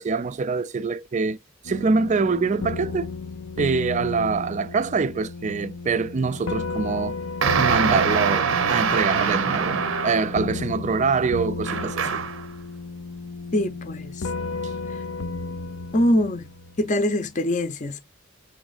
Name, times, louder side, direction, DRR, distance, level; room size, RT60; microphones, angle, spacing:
voice 1, 0.0-1.4 1.6-3.1 3.6-7.2 7.6-12.2, right 4 dB, 35° right, 0.4 m, -24 dB
sound 1, 1.6-17.1, left 3 dB, 80° left, 0.6 m, -34 dB
sound 2, 7.4-10.4 11.6-12.4, right 6 dB, 70° right, 0.7 m, -23 dB
voice 2, 13.5-14.2 15.9-16.4 16.8-18.0, left 1 dB, 35° left, 0.6 m, -23 dB
7.0 x 3.1 x 2.4 m
head